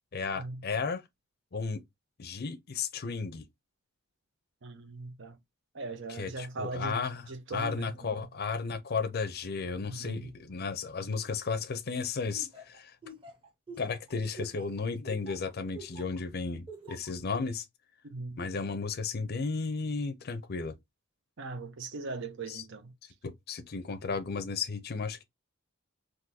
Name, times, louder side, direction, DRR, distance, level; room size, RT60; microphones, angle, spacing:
voice 1, 0.1-1.0 1.5-1.8 2.2-3.4 6.1-12.9 13.8-17.6 18.4-20.7 22.5-22.6 23.2-25.2, left 4 dB, 50° left, 0.5 m, -34 dB
voice 2, 4.6-5.4 5.7-7.0 7.3-8.3 9.8-10.3 18.0-18.4 21.4-22.9, right 3 dB, 65° right, 0.7 m, -40 dB
Laughter, 12.3-16.2 16.7-17.1, right 2 dB, 25° right, 1.0 m, -46 dB
3.8 x 2.6 x 2.7 m
head